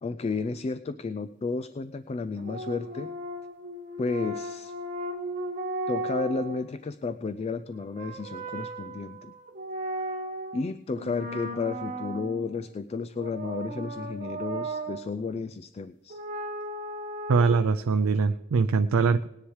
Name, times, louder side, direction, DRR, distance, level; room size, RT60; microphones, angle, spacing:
voice 1, 0.0-3.1 4.0-4.7 5.9-9.3 10.5-16.2, left 4 dB, 30° left, 11 dB, 0.3 m, -32 dB
sound 1, 2.4-6.6 7.7-10.7 11.0-12.6 13.2-15.1 16.1-17.6, right 1 dB, 40° right, 1.8 m, -36 dB
voice 2, 17.3-19.3, right 4 dB, 90° right, 8 dB, 0.4 m, -22 dB
19.0 x 10.0 x 3.2 m, 0.95 s
head